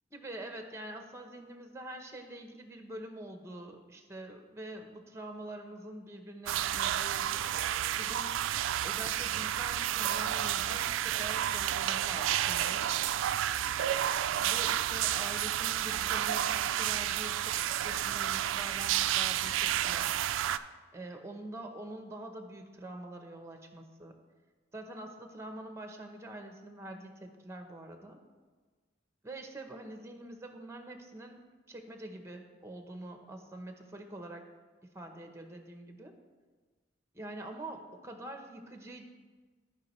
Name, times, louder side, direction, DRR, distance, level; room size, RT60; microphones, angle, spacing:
voice 1, 0.1-7.4 7.9-8.4 8.8-12.9 14.4-20.2 20.9-24.2 24.7-28.2 29.2-34.4 34.8-36.1 37.1-39.0, right 1 dB, 15° right, 5 dB, 0.8 m, -45 dB
sound 1, 6.5-20.6, right 11 dB, 85° right, 0.3 m, -31 dB
13.5 x 5.1 x 3.1 m, 1.4 s
head